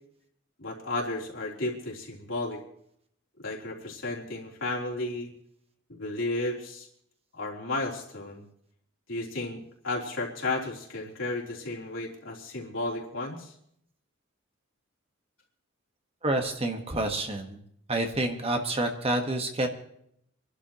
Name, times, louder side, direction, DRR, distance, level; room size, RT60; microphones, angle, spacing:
voice 1, 0.6-2.6 3.4-5.3 5.9-6.9 7.3-8.4 9.1-9.6 9.8-13.5, left 2 dB, 70° left, -3 dB, 3.4 m, -33 dB
voice 2, 16.2-17.6 17.9-19.7, right 1 dB, 30° right, 4 dB, 1.4 m, -28 dB
27.0 x 12.0 x 3.0 m, 0.70 s
head